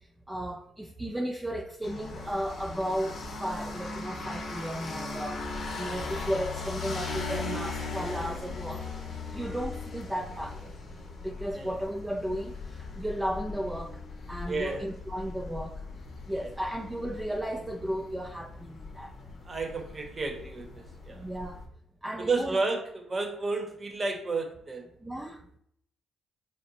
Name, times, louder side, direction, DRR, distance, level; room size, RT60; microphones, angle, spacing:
voice 1, 0.3-8.9 9.3-10.7 11.2-12.6 13.0-14.0 14.3-15.8 16.3-19.1 21.2-21.6 22.0-22.6 25.0-25.4, equal, 10° right, 2 dB, 0.3 m, -34 dB
sound 1, 1.8-21.6, left 3 dB, 55° left, 0.7 m, -39 dB
voice 2, 14.5-14.8 16.3-16.5 19.4-21.3 22.2-24.8, right 3 dB, 30° right, 3 dB, 0.9 m, -32 dB
3.8 x 2.1 x 4.0 m, 0.69 s
cardioid pair, 90°, 0 cm